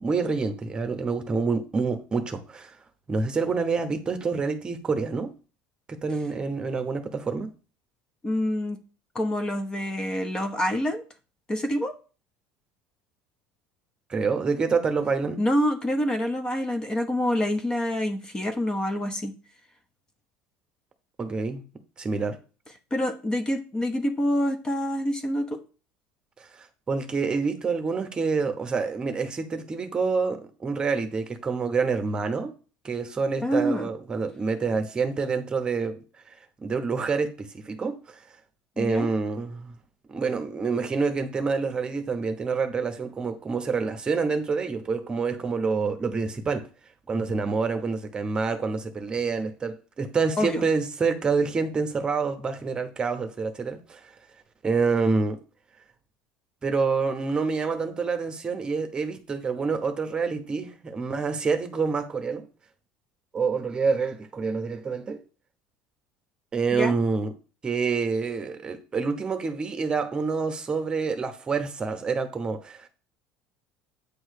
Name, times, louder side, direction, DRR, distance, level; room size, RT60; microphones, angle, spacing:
voice 1, 0.0-2.8 3.1-5.3 5.9-7.5 14.1-15.4 21.2-21.6 22.0-22.4 26.4-32.5 32.8-38.4 38.8-39.8 40.1-46.7 47.1-54.2 54.6-55.4 56.6-62.5 63.3-65.2 66.5-67.3 67.6-72.9, right 4 dB, 20° right, 0.9 m, -27 dB
voice 2, 8.2-8.8 9.1-11.0 11.5-11.9 15.4-19.3 22.9-25.6 33.4-33.9 38.8-39.1 50.4-50.6 66.7-66.9, equal, 20° left, 0.8 m, -26 dB
8.6 x 3.2 x 6.5 m
cardioid pair, 140°, 4 cm